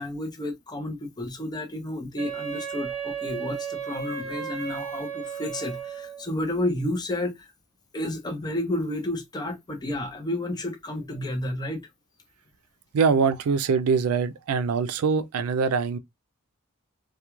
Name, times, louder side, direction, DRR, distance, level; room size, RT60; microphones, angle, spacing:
voice 1, 0.0-7.5 7.9-11.9, left 1 dB, 20° left, 0.5 m, -31 dB
Wind instrument woodwind instrument, 2.2-6.3, right 7 dB, 65° right, 0.8 m, -34 dB
voice 2, 12.9-16.0, right 5 dB, 85° right, 0.4 m, -23 dB
2.3 x 2.2 x 2.9 m
head